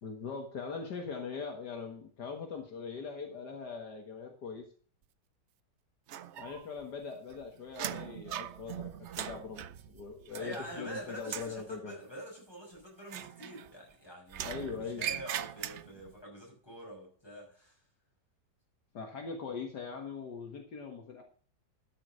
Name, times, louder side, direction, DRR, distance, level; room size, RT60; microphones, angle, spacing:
voice 1, 0.0-4.7 6.4-12.0 14.4-15.0 18.9-21.2, left 5 dB, 70° left, 2.1 m, -41 dB
sound 1, 6.1-6.8 7.1-10.9 11.2-11.6 13.0-13.9 14.3-16.1, right 10 dB, 75° right, 0.6 m, -40 dB
voice 2, 10.4-17.8, equal, 15° left, 6.0 m, -46 dB
12.5 x 6.5 x 6.4 m
omnidirectional pair, 1.9 m